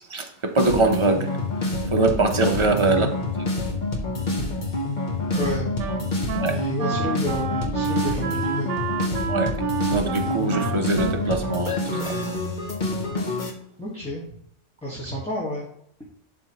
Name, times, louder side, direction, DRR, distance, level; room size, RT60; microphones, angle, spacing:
voice 1, 0.1-1.3 1.9-3.1 6.4-6.6 9.3-9.6 9.9-11.8 12.1-12.2, right 3 dB, 30° right, 3 dB, 0.8 m, -22 dB
sound 1, 0.6-13.5, left 2 dB, 40° left, 1.2 m, -27 dB
voice 2, 2.7-3.1 5.4-5.7 6.3-8.7 13.8-14.2 14.8-15.6, left 1 dB, 5° left, -6 dB, 1.5 m, -30 dB
Wind instrument woodwind instrument, 5.3-12.8, right 6 dB, 90° right, 0.9 m, -30 dB
11.5 x 4.3 x 3.1 m, 0.70 s
omnidirectional pair, 1.2 m